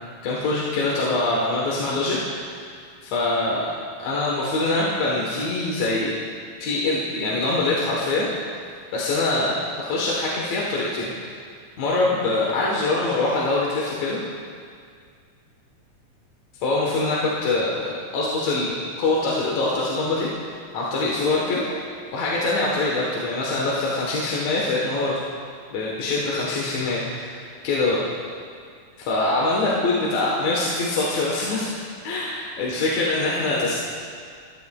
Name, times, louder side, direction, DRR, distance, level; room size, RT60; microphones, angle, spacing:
voice 1, 0.2-2.2 2.5-2.7 3.0-3.7 4.0-6.1 6.6-8.3 8.9-11.1 11.8-14.2 16.6-20.3 20.7-21.7 22.1-25.2 25.7-28.0 29.1-31.7 32.0-33.8, left 2 dB, 65° left, -5 dB, 2.2 m, -24 dB
14.0 x 12.5 x 2.2 m, 2.1 s
omnidirectional pair, 3.6 m